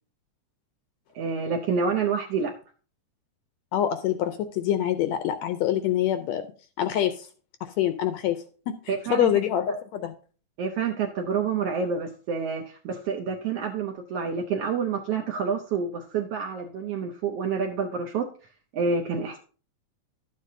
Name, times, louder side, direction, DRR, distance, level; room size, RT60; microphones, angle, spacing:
voice 1, 1.1-2.5 8.9-9.3 10.6-18.3 18.7-19.4, right 5 dB, 75° right, 3 dB, 1.4 m, -28 dB
voice 2, 3.7-6.4 6.8-7.3 7.6-8.4 8.7-10.1, left 11 dB, 80° left, 9 dB, 1.6 m, -25 dB
12.0 x 7.5 x 2.7 m, 0.39 s
omnidirectional pair, 3.5 m